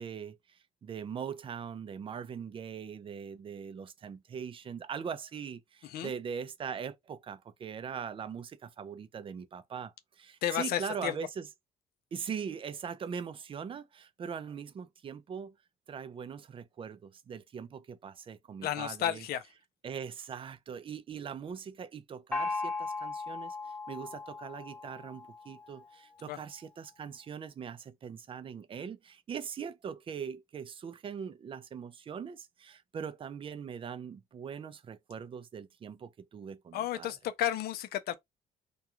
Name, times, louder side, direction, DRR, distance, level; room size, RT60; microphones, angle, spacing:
voice 1, 0.0-11.5 12.1-15.6 15.9-19.2 19.8-37.1, right 7 dB, 30° right, 0.4 m, -41 dB
voice 2, 10.4-11.2 18.6-19.4 26.3-26.4 36.7-38.2, left 11 dB, 65° left, 0.5 m, -32 dB
Gong, 22.3-25.8, left 3 dB, 5° left, 0.7 m, -37 dB
2.4 x 2.3 x 2.9 m
cardioid pair, 110°, 17 cm